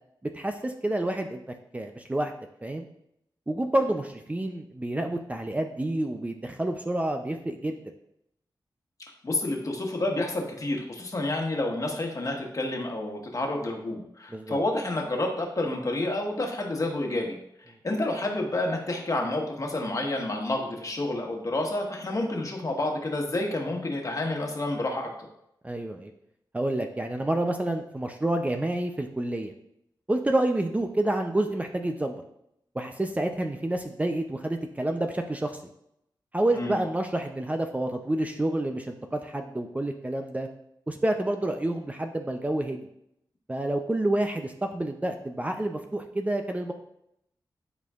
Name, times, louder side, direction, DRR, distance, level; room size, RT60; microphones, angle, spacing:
voice 1, 0.3-1.4 1.7-2.3 2.6-2.9 3.5-7.8 14.3-14.6 25.6-26.1 26.5-29.5 30.1-32.2 32.7-35.6 36.3-40.5 40.9-42.9 43.5-46.7, right 1 dB, 15° right, 4 dB, 0.5 m, -28 dB
voice 2, 9.2-17.4 17.8-25.3 36.5-36.8, left 2 dB, 45° left, 0 dB, 1.4 m, -29 dB
11.0 x 4.3 x 2.5 m, 0.76 s
wide cardioid pair, 85°, 8 cm